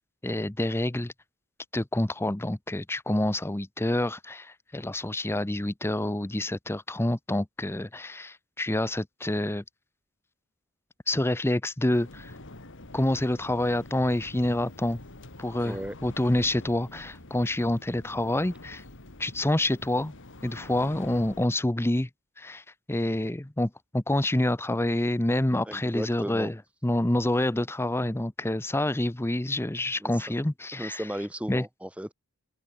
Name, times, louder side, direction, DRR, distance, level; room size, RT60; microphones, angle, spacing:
voice 1, 0.2-1.1 1.7-9.6 11.1-12.3 12.9-15.0 15.4-18.8 19.2-20.1 20.4-22.1 22.4-26.6 26.8-31.0 31.5-31.6, left 1 dB, 10° left, 0.7 m, -27 dB
sound 1, 11.9-21.5, left 2 dB, 60° left, 2.6 m, -46 dB
voice 2, 15.6-16.0 25.6-26.5 30.0-30.4 30.7-32.1, equal, 5° right, 1.3 m, -35 dB
open air
head